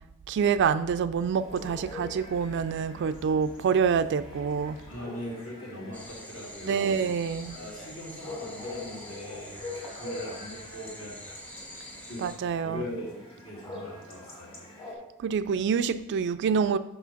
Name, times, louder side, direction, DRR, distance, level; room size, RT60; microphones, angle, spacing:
voice 1, 0.3-4.8 6.7-7.5 12.2-12.8 15.2-16.8, right 6 dB, 50° right, 13 dB, 0.3 m, -26 dB
Chatter / Bark / Livestock farm animals working animals, 1.4-15.0, left 2 dB, 25° left, 1.7 m, -44 dB
voice 2, 4.9-7.0 7.5-11.4 12.1-12.3 12.6-14.7, left 1 dB, 65° left, -4 dB, 2.5 m, -40 dB
sound 1, 5.9-12.4, equal, 5° left, 0.8 m, -46 dB
6.1 x 5.1 x 5.1 m, 0.88 s
head